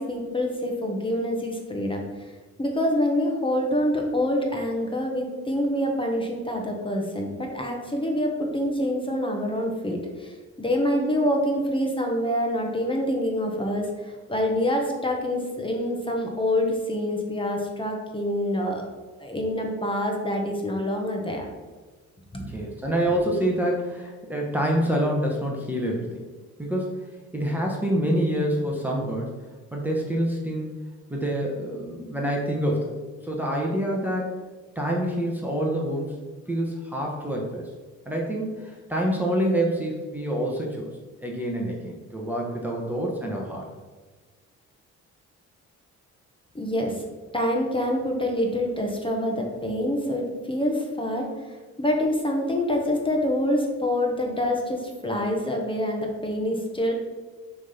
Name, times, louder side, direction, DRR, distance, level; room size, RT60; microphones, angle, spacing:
voice 1, 0.0-2.3 2.6-18.8 19.2-21.5 22.3-22.4 46.5-47.0 47.3-51.3 51.8-56.9, left 1 dB, 15° left, 1 dB, 1.3 m, -26 dB
voice 2, 22.5-26.2 26.6-29.3 29.7-30.7 31.1-32.9 33.2-34.4 34.7-36.2 36.5-37.7 38.0-40.9 41.2-43.6, equal, 5° right, -2 dB, 1.2 m, -27 dB
6.2 x 3.6 x 5.7 m, 1.3 s
cardioid pair, 90°, 30 cm